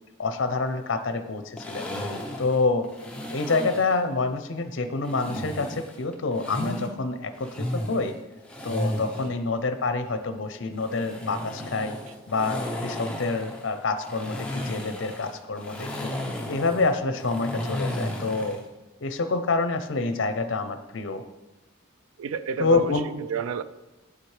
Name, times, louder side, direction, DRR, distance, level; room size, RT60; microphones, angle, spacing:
voice 1, 0.2-1.9 2.4-2.9 3.3-8.2 8.6-12.0 12.3-16.1 16.5-18.6 19.0-21.2 22.6-23.1, left 3 dB, 65° left, 9 dB, 0.6 m, -27 dB
sound 1, 1.6-4.0 5.0-6.9 7.3-9.3 10.7-18.7, left 1 dB, 5° left, 0.7 m, -34 dB
voice 2, 22.2-23.6, right 6 dB, 90° right, 13 dB, 0.4 m, -31 dB
8.6 x 7.5 x 3.2 m, 1.1 s
head